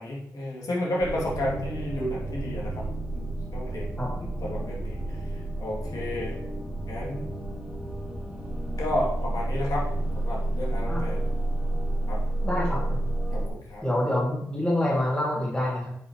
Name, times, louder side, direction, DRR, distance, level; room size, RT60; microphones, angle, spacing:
voice 1, 0.0-2.9 3.1-3.9 4.2-6.3 6.9-7.2 8.8-9.9 10.2-11.2 12.1-12.2 13.3-13.8, left 1 dB, 65° left, -4 dB, 2.7 m, -32 dB
sound 1, 1.0-13.5, right 1 dB, 5° right, 2.1 m, -30 dB
voice 2, 4.0-4.3 10.9-11.0 12.4-13.1 13.8-15.9, left 1 dB, 15° left, -5 dB, 2.5 m, -27 dB
8.0 x 5.6 x 3.1 m, 0.77 s
supercardioid pair, 45°, 7 cm